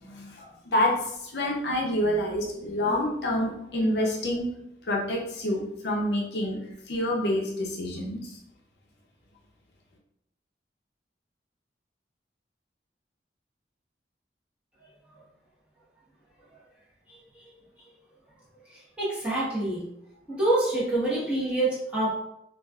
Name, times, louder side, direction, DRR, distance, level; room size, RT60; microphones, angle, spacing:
voice 1, 0.0-0.9 1.3-4.5 4.9-6.6 6.9-8.3, left 1 dB, 65° left, -1 dB, 0.6 m, -27 dB
voice 2, 19.0-19.8 20.3-22.2, right 2 dB, 5° right, -9 dB, 1.1 m, -26 dB
3.2 x 2.4 x 2.3 m, 0.78 s
head